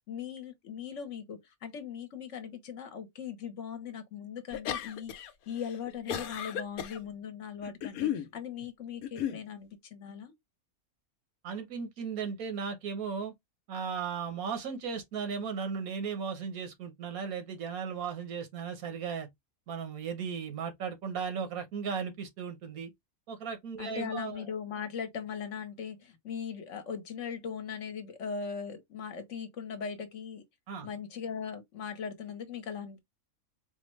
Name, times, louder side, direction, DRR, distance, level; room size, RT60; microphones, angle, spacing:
voice 1, 0.1-10.3 23.8-30.4 30.8-33.0, left 7 dB, 60° left, 1.1 m, -39 dB
sound 1, 4.5-5.3 5.6-7.0 7.6-8.3 9.0-9.4, left 10 dB, 90° left, 1.1 m, -34 dB
voice 2, 11.4-13.3 13.7-19.3 19.7-22.9 23.3-24.4 30.7-30.9, right 6 dB, 90° right, 1.4 m, -36 dB
4.4 x 2.1 x 3.0 m
omnidirectional pair, 1.5 m